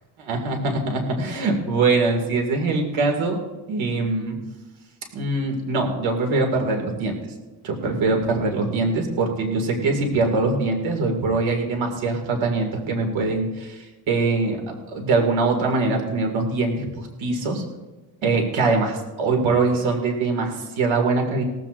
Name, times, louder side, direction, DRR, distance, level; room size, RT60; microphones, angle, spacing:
voice 1, 0.3-3.4 3.7-4.4 5.1-7.3 7.6-17.6 18.2-21.4, right 3 dB, 90° right, 2 dB, 2.3 m, -23 dB
18.0 x 14.5 x 2.5 m, 1.2 s
cardioid pair, 140°, 46 cm